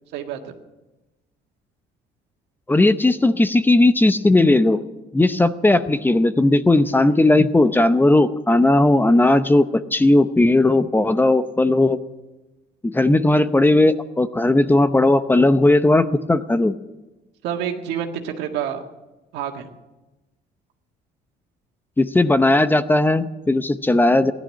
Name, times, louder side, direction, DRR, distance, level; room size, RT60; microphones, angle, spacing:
voice 1, 0.1-0.5 17.4-18.8 19.3-19.7, right 9 dB, 90° right, 4 dB, 1.7 m, -28 dB
voice 2, 2.7-4.8 5.1-12.0 12.8-16.7 22.0-24.3, left 2 dB, 10° left, 12 dB, 0.7 m, -17 dB
16.0 x 11.5 x 7.6 m, 1.1 s
cardioid pair, 110°, 17 cm